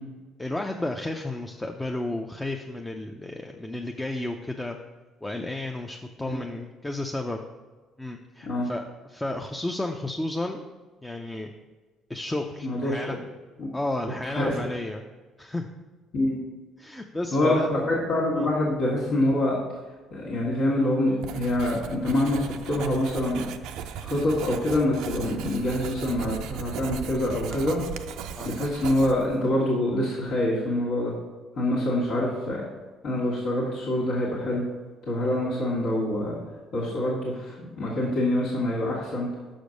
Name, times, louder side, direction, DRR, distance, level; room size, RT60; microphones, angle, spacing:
voice 1, 0.4-4.8 5.2-7.4 8.0-8.8 9.1-10.6 11.0-11.5 12.1-13.1 13.7-15.0 15.4-15.7 16.8-17.7 18.3-18.5 28.3-28.5, left 2 dB, 10° left, 2 dB, 0.5 m, -32 dB
voice 2, 12.6-13.2 13.6-13.7 14.2-14.5 16.1-16.4 17.3-19.5 20.1-23.4 24.0-27.8 28.4-31.1 31.5-32.6 33.0-34.7 35.0-36.4 36.7-39.3, left 1 dB, 70° left, -6 dB, 1.7 m, -25 dB
Writing, 21.2-29.4, right 8 dB, 80° right, 0.4 m, -37 dB
6.1 x 5.1 x 5.1 m, 1.3 s
supercardioid pair, 80°, 0 cm